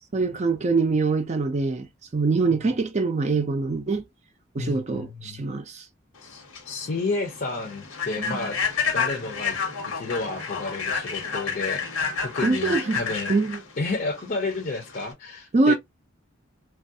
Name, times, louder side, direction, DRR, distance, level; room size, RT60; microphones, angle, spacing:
voice 1, 0.1-1.9 2.1-4.1 4.5-5.9 8.3-8.4 12.4-13.0 13.3-13.6 15.5-15.7, right 3 dB, 35° right, 0.4 m, -24 dB
voice 2, 4.6-5.4 6.2-8.6 8.9-9.6 9.8-11.8 12.2-13.3 13.8-15.7, left 3 dB, 45° left, 0.6 m, -31 dB
Human voice / Train, 6.2-15.1, left 5 dB, 90° left, 1.1 m, -30 dB
3.2 x 2.3 x 2.6 m
head